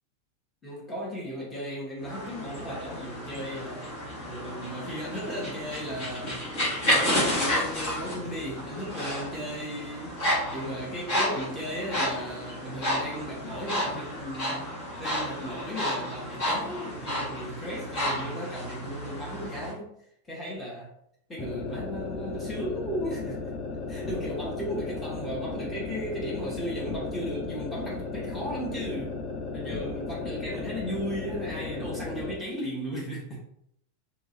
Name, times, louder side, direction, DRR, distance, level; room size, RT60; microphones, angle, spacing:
voice 1, 0.6-3.9 4.3-6.4 6.9-10.2 10.5-19.9 20.3-20.9 21.3-23.4 23.9-29.2 29.5-33.4, equal, 15° left, -5 dB, 1.1 m, -36 dB
sound 1, 2.0-19.7, equal, 50° left, 1.5 m, -31 dB
sound 2, 21.4-32.4, left 4 dB, 30° left, 0.5 m, -35 dB
2.9 x 2.8 x 2.7 m, 0.73 s
figure-of-eight pair, 90°, 0 cm